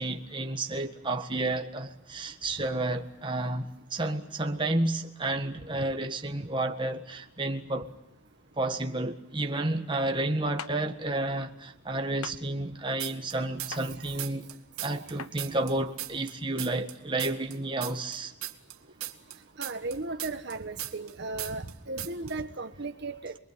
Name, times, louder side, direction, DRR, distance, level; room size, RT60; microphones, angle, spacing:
voice 1, 0.0-7.9 8.6-14.5 14.8-18.3, right 2 dB, 20° right, 1.7 m, -31 dB
sound 1, 10.6-10.8 12.2-12.4 13.7-13.9 15.2-15.3, left 6 dB, 85° left, 1.0 m, -39 dB
sound 2, 13.0-13.9 14.2-16.9 17.2-21.1 21.4-21.7 22.0-22.3, right 14 dB, 80° right, 2.3 m, -37 dB
voice 2, 13.7-14.2 14.8-15.0 19.6-23.4, right 3 dB, 50° right, 1.3 m, -36 dB
28.5 x 22.5 x 9.0 m
head